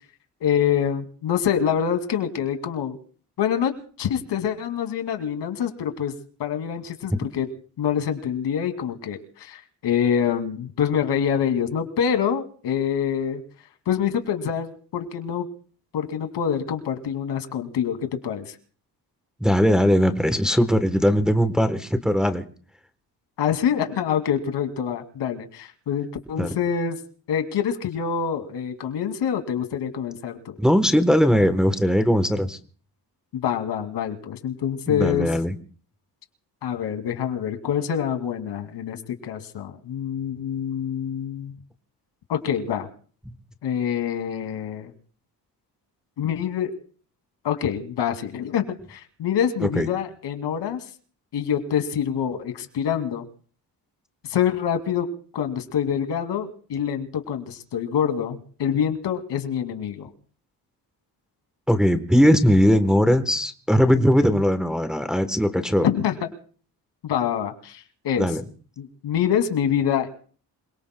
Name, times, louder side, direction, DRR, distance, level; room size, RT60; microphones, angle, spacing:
voice 1, 0.4-3.0 3.4-3.7 4.0-6.1 6.4-7.5 7.8-13.4 13.9-15.5 15.9-18.0 18.2-18.6 23.4-27.0 27.3-30.6 33.3-35.3 36.6-39.0 39.2-41.5 42.3-42.9 43.6-44.9 46.2-46.7 47.4-50.8 51.3-53.2 54.3-55.1 55.3-60.1 65.8-66.1 67.0-68.3 68.8-70.2, left 8 dB, 80° left, 7 dB, 2.4 m, -26 dB
voice 2, 19.4-22.4 26.4-26.6 30.6-32.6 34.9-35.5 49.6-49.9 61.7-65.9 68.2-68.4, equal, ahead, 8 dB, 1.1 m, -19 dB
27.0 x 23.0 x 2.2 m, 0.43 s
cardioid pair, 160°, 40 cm